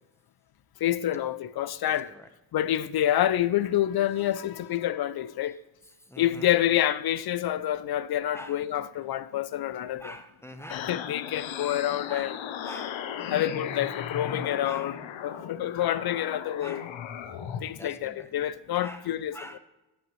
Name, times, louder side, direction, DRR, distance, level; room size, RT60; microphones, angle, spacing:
voice 1, 0.8-2.1 2.5-5.6 6.2-10.1 10.9-12.3 13.3-14.9 15.2-16.8 17.6-19.3, left 12 dB, 55° left, 0.5 m, -27 dB
voice 2, 1.8-2.3 5.8-6.5 8.3-8.6 10.0-10.9 12.1-13.3 14.6-14.9 16.6-16.9 17.7-18.3 18.8-19.6, equal, 5° left, 0.9 m, -45 dB
sound 1, 10.7-17.6, left 9 dB, 70° left, 0.9 m, -36 dB
14.0 x 6.3 x 3.1 m
cardioid pair, 80°, 48 cm